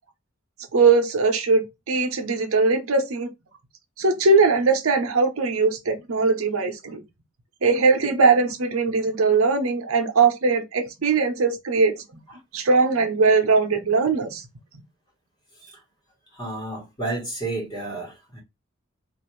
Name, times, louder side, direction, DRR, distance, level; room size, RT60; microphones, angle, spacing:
voice 1, 0.7-3.3 4.0-7.0 7.6-12.0 12.5-14.4, right 4 dB, 85° right, 0.7 m, -20 dB
voice 2, 16.3-18.4, right 2 dB, 20° left, 1.2 m, -31 dB
2.6 x 2.5 x 3.1 m
head